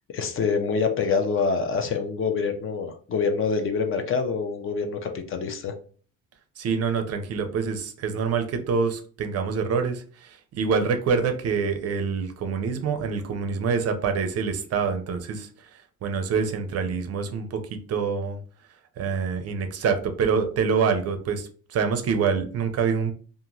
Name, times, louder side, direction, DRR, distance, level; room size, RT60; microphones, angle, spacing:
voice 1, 0.1-5.7, left 5 dB, 40° left, 6 dB, 0.4 m, -26 dB
voice 2, 6.6-15.5 16.0-18.4 19.0-23.1, right 5 dB, 45° right, 7 dB, 0.5 m, -26 dB
2.8 x 2.5 x 2.5 m, 0.43 s
cardioid pair, 155°, 35 cm